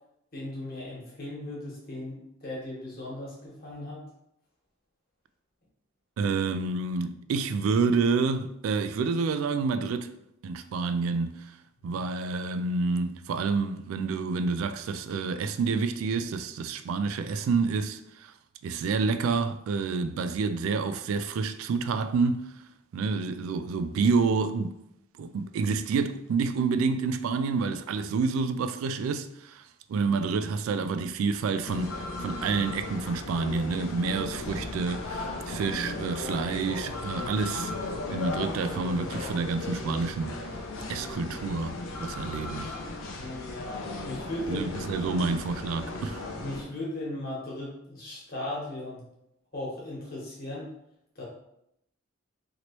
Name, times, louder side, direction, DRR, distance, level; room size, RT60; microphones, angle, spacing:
voice 1, 0.3-4.0 11.8-12.0 43.2-44.6 45.1-45.3 46.4-49.0 49.5-50.7 51.1-51.2, left 1 dB, 45° left, 1.2 m, -37 dB
voice 2, 6.2-10.1 10.4-11.5 11.8-18.3 18.6-22.5 22.9-24.8 25.2-29.6 29.9-37.7 38.1-40.4 40.9-42.7 44.5-46.2, right 4 dB, 90° right, 0.3 m, -28 dB
sound 1, 31.6-46.6, left 2 dB, 85° left, 0.5 m, -36 dB
3.0 x 2.9 x 2.9 m
head